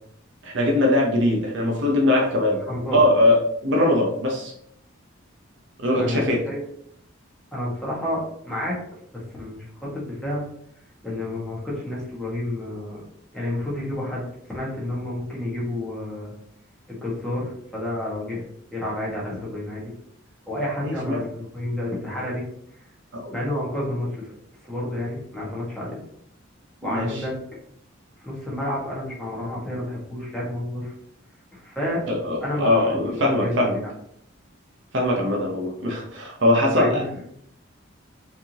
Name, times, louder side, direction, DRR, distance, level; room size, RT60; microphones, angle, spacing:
voice 1, 0.4-2.6 2.9-4.5 5.8-6.4 20.8-21.2 23.1-23.2 26.8-27.2 32.1-33.8 34.9-37.0, left 1 dB, 60° right, 0 dB, 0.9 m, -21 dB
voice 2, 2.6-3.0 5.9-6.6 7.5-8.8 9.1-9.7 9.9-10.4 11.0-13.0 13.3-16.3 16.9-18.4 18.7-19.8 20.5-22.4 23.3-24.3 24.6-26.0 26.8-27.3 28.2-30.9 31.5-32.0 32.4-33.9 36.7-37.1, left 1 dB, 5° left, -6 dB, 1.6 m, -30 dB
4.5 x 3.6 x 3.0 m, 0.68 s
head